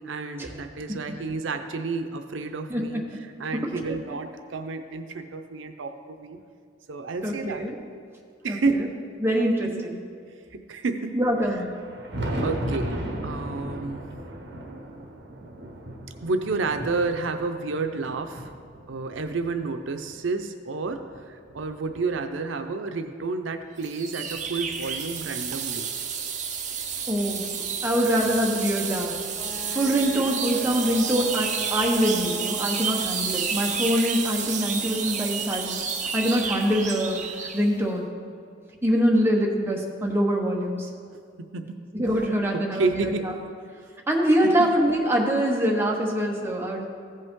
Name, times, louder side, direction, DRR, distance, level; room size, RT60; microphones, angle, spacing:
voice 1, 0.0-3.0 3.4-6.4 6.9-7.7 8.4-9.0 9.6-9.9 10.5-11.2 12.4-14.0 14.4-15.2 16.2-18.5 18.9-25.8 41.4-41.8 42.5-43.4 44.4-44.5, right 3 dB, 85° right, 7 dB, 0.6 m, -30 dB
voice 2, 2.7-3.0 3.5-4.2 7.2-7.8 8.5-8.8 9.2-10.0 11.1-11.7 27.1-27.5 27.8-29.1 29.7-35.8 36.1-37.2 37.5-38.1 38.8-40.9 41.9-43.1 44.1-46.8, equal, 10° right, -1 dB, 1.0 m, -24 dB
Thunder, 11.6-20.2 20.8-22.5 23.7-23.8 24.3-24.4 26.3-26.4 27.7-27.8 29.4-29.5, right 1 dB, 60° right, 1.3 m, -36 dB
sound 1, 23.8-37.7, right 6 dB, 40° right, 0.7 m, -30 dB
Wind instrument woodwind instrument, 29.3-33.1, left 3 dB, 10° left, 0.6 m, -40 dB
15.0 x 5.4 x 3.7 m, 2.3 s
head